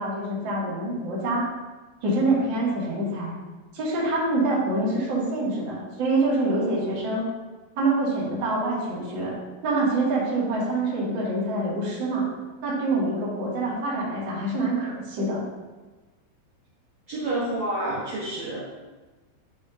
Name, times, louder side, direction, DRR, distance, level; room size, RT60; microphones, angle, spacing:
voice 1, 0.0-1.4 2.0-3.3 3.7-7.2 7.7-9.4 9.6-12.3 12.6-15.4, right 2 dB, 45° right, -7 dB, 1.5 m, -25 dB
voice 2, 17.1-18.7, right 1 dB, 70° right, -9 dB, 1.6 m, -29 dB
11.0 x 4.9 x 2.8 m, 1.2 s
omnidirectional pair, 5.7 m